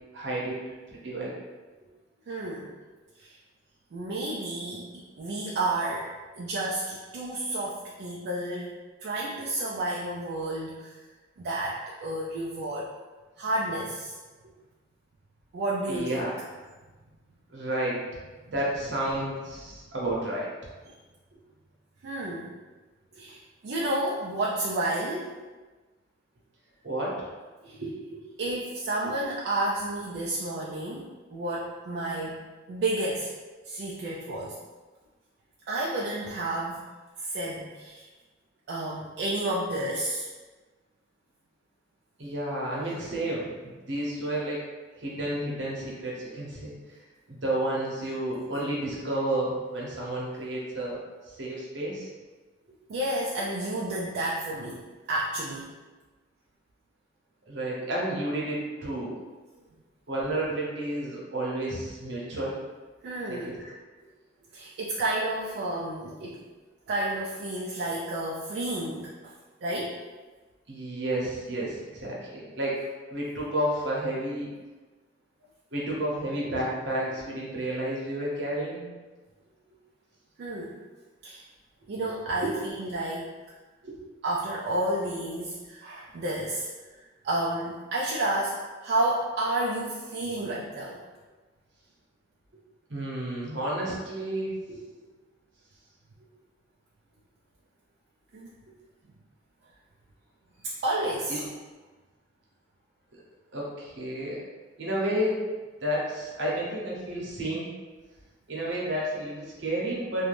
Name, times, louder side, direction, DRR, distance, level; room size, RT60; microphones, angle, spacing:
voice 1, 0.1-0.6 0.9-1.3 15.9-16.3 17.5-18.0 18.5-20.5 26.8-27.1 27.8-28.5 29.0-29.1 42.2-44.6 45.0-46.7 47.3-51.0 51.4-52.1 57.5-59.2 60.1-62.6 63.3-63.5 70.7-72.8 73.1-74.5 75.7-78.9 82.4-82.5 83.8-84.0 92.9-94.8 101.3-101.4 103.5-104.4 104.8-105.4 105.8-107.7 108.5-110.3, right 1 dB, 80° right, -4 dB, 0.8 m, -31 dB
voice 2, 2.3-2.7 3.2-3.4 3.9-6.1 6.3-8.7 9.0-10.9 11.4-12.9 13.4-14.2 15.5-16.2 20.9-21.0 22.0-22.5 23.2-25.3 27.6-27.8 28.4-32.4 32.7-33.3 33.7-34.6 35.7-36.8 37.2-38.1 38.7-40.3 52.9-54.8 55.1-55.7 63.0-63.5 64.5-66.4 66.9-69.3 69.6-70.0 80.4-80.8 81.2-81.4 81.9-83.3 84.2-86.7 87.2-91.0 98.3-98.5 100.6-101.4, right 1 dB, 60° right, -4 dB, 0.3 m, -31 dB
2.5 x 2.2 x 3.2 m, 1.3 s
head